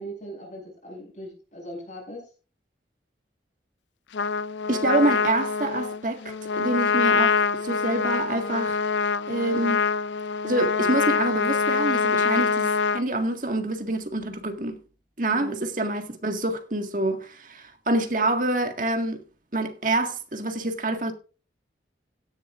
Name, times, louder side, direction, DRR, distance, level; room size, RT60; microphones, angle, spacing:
voice 1, 0.0-2.2 15.3-15.6, right 1 dB, 45° left, 7.4 m, -39 dB
Trumpet, 4.1-13.0, left 5 dB, 80° left, 0.5 m, -25 dB
voice 2, 4.7-8.8 9.3-9.8 10.4-14.8 15.2-19.2 19.5-21.1, right 2 dB, 45° right, 1.8 m, -26 dB
16.5 x 11.0 x 2.5 m
head